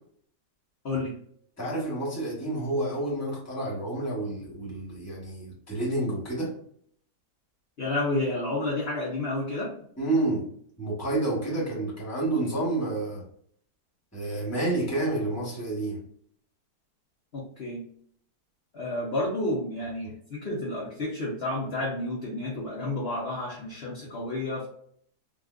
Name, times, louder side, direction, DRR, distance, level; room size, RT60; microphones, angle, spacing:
voice 1, 1.6-6.6 10.0-10.4 10.8-13.2 14.1-16.0, right 2 dB, 10° left, -5 dB, 1.2 m, -29 dB
voice 2, 7.8-9.7 17.3-17.9 18.7-24.7, left 2 dB, 50° left, -4 dB, 0.9 m, -30 dB
3.9 x 2.5 x 2.4 m, 0.62 s
omnidirectional pair, 1.8 m